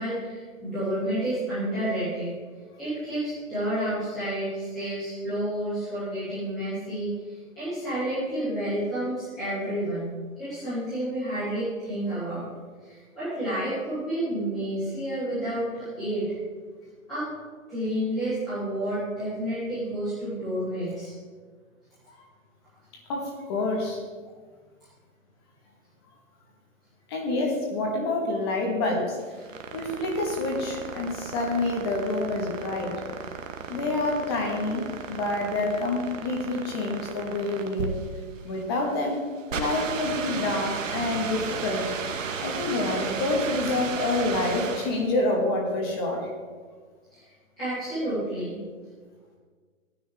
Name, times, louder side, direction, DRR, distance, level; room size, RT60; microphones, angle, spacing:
voice 1, 0.0-2.3 2.8-10.1 10.4-12.5 12.8-16.2 17.1-17.3 17.7-21.1 47.1-47.2 47.6-48.6, right 1 dB, ahead, -22 dB, 0.5 m, -30 dB
voice 2, 23.1-24.0 27.1-29.2 29.7-32.9 33.7-37.9 38.4-39.2 39.5-41.9 42.4-46.3, left 2 dB, 20° left, 0 dB, 1.2 m, -27 dB
sound 1, 29.2-45.1, right 5 dB, 65° right, 1.3 m, -34 dB
14.0 x 9.6 x 3.4 m, 1.5 s
hypercardioid pair, 170°, 41 cm